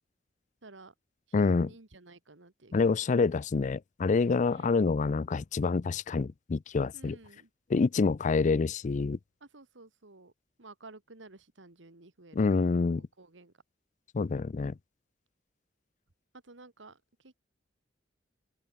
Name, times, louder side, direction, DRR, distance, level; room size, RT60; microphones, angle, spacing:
voice 1, 0.6-0.9 1.4-2.9 4.5-4.8 6.9-7.5 9.4-10.3 10.6-12.7 12.9-13.5 16.4-17.3, right 3 dB, 85° right, 2.0 m, -53 dB
voice 2, 1.3-1.7 2.7-7.2 7.7-9.2 12.3-13.0 14.1-14.7, left 4 dB, 40° left, 0.4 m, -27 dB
open air
head